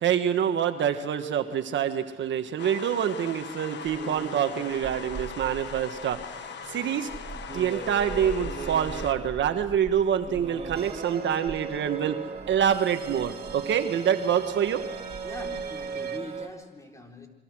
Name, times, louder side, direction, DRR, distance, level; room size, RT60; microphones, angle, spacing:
voice 1, 0.0-7.1 7.5-12.2 12.5-14.8, right 9 dB, 70° right, 8 dB, 1.5 m, -26 dB
sound 1, 2.6-9.1, left 8 dB, 60° left, 1.3 m, -40 dB
sound 2, 3.8-16.5, right 4 dB, 30° right, 3.2 m, -38 dB
sound 3, 10.7-16.2, right 8 dB, 50° right, 1.9 m, -45 dB
voice 2, 15.2-17.3, left 1 dB, 15° left, 2 dB, 4.1 m, -42 dB
27.5 x 23.0 x 6.2 m, 1.1 s
cardioid pair, 90°, 20 cm